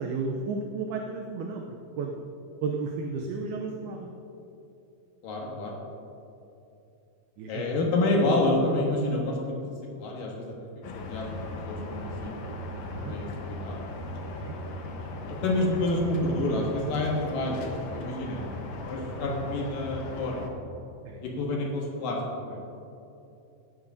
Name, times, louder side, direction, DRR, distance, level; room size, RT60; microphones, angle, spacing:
voice 1, 0.0-2.2 2.6-4.1 7.4-7.6 12.7-13.1 14.3-14.5 19.1-19.3 21.1-21.2, right 4 dB, 80° right, 1 dB, 2.2 m, -33 dB
voice 2, 5.2-5.8 7.5-9.6 10.0-10.5 10.9-12.3 12.9-14.0 15.4-17.6 17.9-18.6 18.8-20.4 21.2-22.2 22.5-22.6, left 2 dB, 65° left, -1 dB, 2.4 m, -28 dB
sound 1, 10.8-20.5, left 2 dB, 85° left, 1.6 m, -37 dB
16.5 x 10.5 x 2.6 m, 2.8 s
omnidirectional pair, 5.1 m